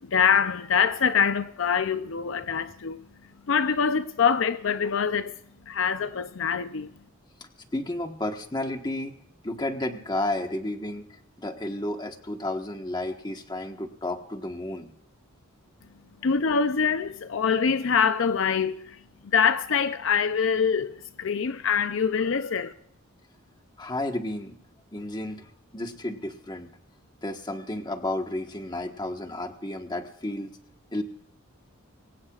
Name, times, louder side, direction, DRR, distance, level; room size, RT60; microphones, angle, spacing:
voice 1, 0.0-3.0 3.5-5.4 5.7-6.9 16.2-22.7, left 6 dB, 65° left, 0.5 m, -24 dB
voice 2, 7.4-9.2 9.4-14.9 23.8-24.6 24.9-26.7 27.2-30.6 30.9-31.0, left 1 dB, 20° left, 1.3 m, -32 dB
23.0 x 18.0 x 2.4 m
head